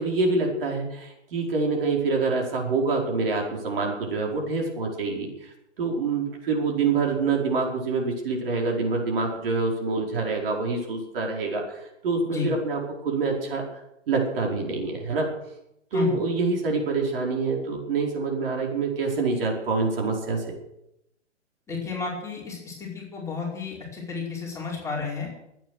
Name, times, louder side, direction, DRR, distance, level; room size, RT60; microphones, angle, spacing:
voice 1, 0.0-5.5 5.8-13.6 14.1-15.3 15.9-20.5, right 3 dB, 50° right, 0 dB, 4.8 m, -26 dB
voice 2, 21.7-25.3, left 5 dB, 10° left, -4 dB, 4.9 m, -32 dB
23.5 x 9.3 x 6.5 m, 0.82 s
figure-of-eight pair, 125°, 36 cm